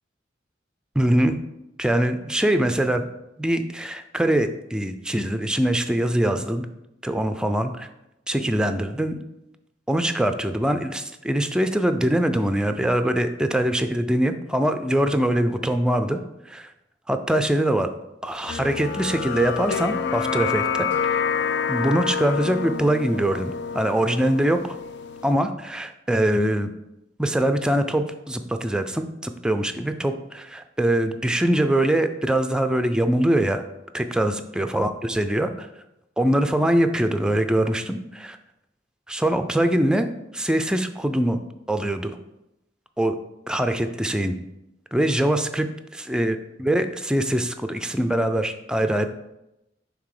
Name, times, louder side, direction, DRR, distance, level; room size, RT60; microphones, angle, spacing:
voice 1, 1.0-1.3 1.8-3.1 3.4-6.7 7.0-7.9 8.3-9.2 9.9-16.2 16.5-16.7 17.1-17.9 18.2-21.3 21.7-24.8 25.2-26.7 27.2-33.6 33.9-35.7 36.2-38.4 39.1-40.1 40.3-41.4 41.7-42.2 43.0-43.1 43.5-44.3 44.9-45.7 45.9-49.1, right 1 dB, 5° right, 8 dB, 0.3 m, -23 dB
sound 1, 18.5-25.3, left 6 dB, 65° left, 0.4 m, -28 dB
5.9 x 3.6 x 4.8 m, 0.89 s
head